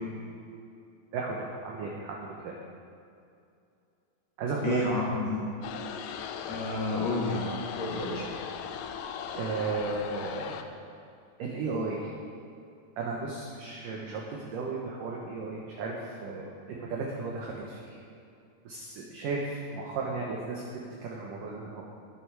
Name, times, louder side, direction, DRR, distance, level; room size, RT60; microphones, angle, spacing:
voice 1, 1.1-2.6 4.4-5.0 8.5-8.6 9.4-10.6 11.4-12.1 13.0-18.1 18.6-21.8, right 3 dB, 70° right, -2 dB, 2.1 m, -35 dB
voice 2, 4.6-5.4 6.5-7.5 7.8-8.3, left 2 dB, 55° left, -4 dB, 2.1 m, -30 dB
sound 1, 5.6-10.6, left 7 dB, 85° left, 2.8 m, -38 dB
20.0 x 7.1 x 4.7 m, 2.5 s
omnidirectional pair, 5.0 m